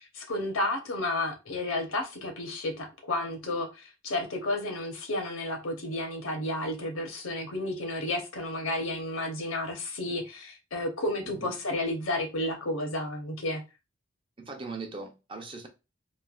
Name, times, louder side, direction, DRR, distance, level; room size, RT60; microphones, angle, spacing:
voice 1, 0.2-13.6, left 1 dB, 75° left, 1.0 m, -32 dB
voice 2, 14.4-15.7, right 3 dB, 25° right, 0.6 m, -40 dB
3.2 x 2.3 x 2.4 m
head